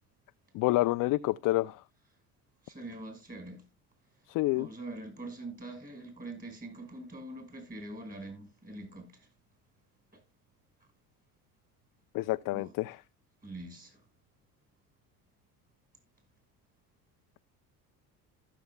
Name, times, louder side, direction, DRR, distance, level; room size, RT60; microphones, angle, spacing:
voice 1, 0.5-1.8 4.3-4.7 12.1-13.0, left 18 dB, 50° left, 0.4 m, -28 dB
voice 2, 2.6-3.6 4.6-9.3 12.5-12.7 13.4-14.0, right 2 dB, 20° right, 5.5 m, -44 dB
15.0 x 6.9 x 2.2 m
supercardioid pair, 80°, 43 cm